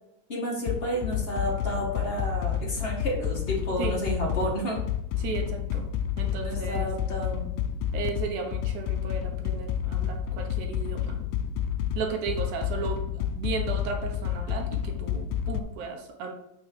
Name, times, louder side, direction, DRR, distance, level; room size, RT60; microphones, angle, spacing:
voice 1, 0.3-4.8 6.4-7.5, equal, 35° left, -2 dB, 1.0 m, -31 dB
sound 1, 0.7-15.6, left 9 dB, 85° left, 2.2 m, -30 dB
voice 2, 5.2-5.9 6.2-6.9 7.9-11.2 12.0-13.0 13.4-16.3, right 5 dB, 70° right, 3 dB, 2.3 m, -35 dB
7.6 x 5.2 x 4.6 m, 0.85 s
omnidirectional pair, 3.9 m